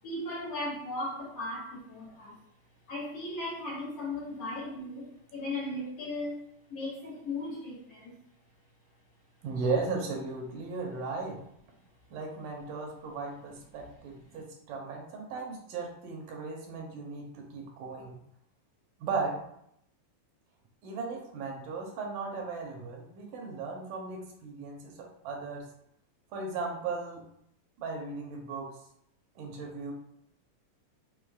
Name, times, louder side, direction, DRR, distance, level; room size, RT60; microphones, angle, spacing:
voice 1, 0.0-2.4 2.9-6.4 6.7-8.1 14.3-14.4, left 2 dB, 65° left, -8 dB, 1.6 m, -37 dB
voice 2, 9.4-11.4 12.1-18.2 19.0-19.4 20.8-25.7 26.3-27.2 27.8-28.7 29.4-29.9, right 4 dB, 80° right, 0 dB, 2.2 m, -36 dB
6.2 x 2.9 x 2.4 m, 0.74 s
omnidirectional pair, 3.9 m